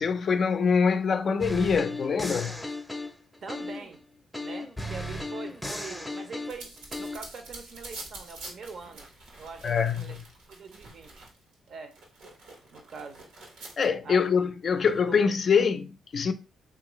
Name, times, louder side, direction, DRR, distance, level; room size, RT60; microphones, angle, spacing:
voice 1, 0.0-2.6 9.6-10.2 13.8-16.3, left 6 dB, 50° left, 0.3 m, -24 dB
sound 1, 1.4-3.9 4.3-7.2, left 1 dB, 5° left, 0.6 m, -36 dB
voice 2, 3.4-4.0 4.4-6.7 7.0-9.1 9.4-10.2 10.5-11.3 11.7-12.0 12.7-13.3 14.0-14.3 15.1-15.2, right 4 dB, 55° right, 0.6 m, -43 dB
sound 2, 6.5-11.5 11.9-13.9, right 2 dB, 90° right, 1.0 m, -46 dB
3.2 x 2.4 x 3.0 m
cardioid pair, 90°, 0 cm